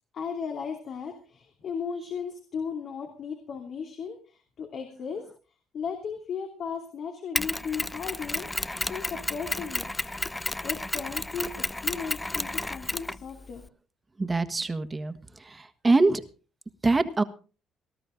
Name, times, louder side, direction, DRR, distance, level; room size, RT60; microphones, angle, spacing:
voice 1, 0.1-5.2 5.7-8.5 8.9-9.8 10.6-11.5 11.8-13.7, left 6 dB, 60° left, 3 dB, 2.8 m, -35 dB
Mechanisms, 7.4-13.7, left 2 dB, 15° left, 0.6 m, -32 dB
voice 2, 14.2-15.1 15.8-16.2 16.8-17.2, right 3 dB, 20° right, 11 dB, 1.5 m, -23 dB
19.5 x 12.5 x 3.8 m, 0.37 s
cardioid pair, 85°, 0 cm